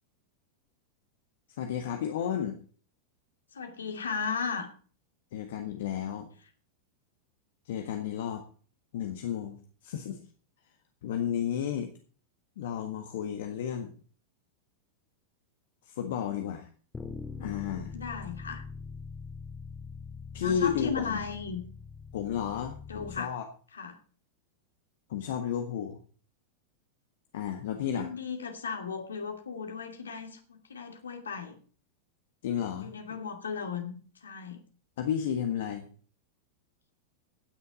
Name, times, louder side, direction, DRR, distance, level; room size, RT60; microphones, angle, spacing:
voice 1, 1.6-2.6 5.3-6.3 7.6-8.4 8.9-9.6 9.8-10.2 11.0-11.9 12.6-13.9 15.8-16.7 17.4-17.9 20.3-21.2 22.1-23.4 25.1-26.0 27.3-28.1 32.4-32.9 35.0-35.9, left 9 dB, 55° left, 5 dB, 1.5 m, -32 dB
voice 2, 3.5-4.7 17.9-18.6 20.4-21.6 22.9-23.3 23.7-24.0 27.9-31.6 32.8-34.6, left 5 dB, 70° left, 4 dB, 2.5 m, -36 dB
Bass guitar, 16.9-23.2, left 5 dB, 15° left, 2.1 m, -43 dB
17.0 x 9.8 x 4.1 m, 0.42 s
figure-of-eight pair, 90°, 0 cm